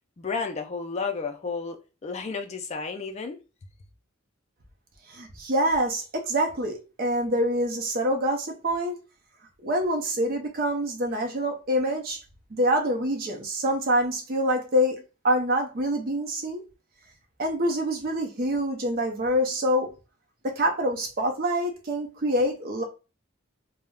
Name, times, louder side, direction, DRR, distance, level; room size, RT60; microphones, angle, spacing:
voice 1, 0.2-3.4, left 4 dB, 30° left, 0.4 m, -32 dB
voice 2, 5.1-9.0 9.6-12.2 12.5-16.6 17.4-19.9 20.4-22.8, equal, 45° right, 0.5 m, -26 dB
2.3 x 2.0 x 3.4 m
head